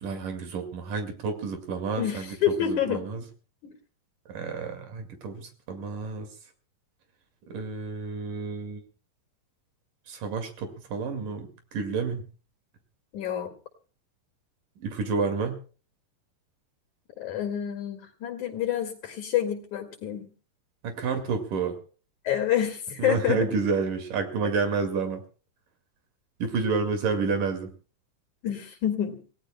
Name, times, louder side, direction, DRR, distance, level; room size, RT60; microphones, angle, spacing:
voice 1, 0.0-2.4 2.6-3.2 4.3-6.3 7.5-8.8 10.1-12.2 14.8-15.6 20.8-21.8 23.0-25.2 26.4-27.7, right 4 dB, 75° right, 6 dB, 3.8 m, -30 dB
voice 2, 2.0-3.0 13.1-13.5 17.2-20.3 22.2-23.5 28.4-29.2, left 10 dB, 65° left, 4 dB, 3.5 m, -28 dB
29.0 x 17.5 x 2.3 m, 0.38 s
omnidirectional pair, 3.7 m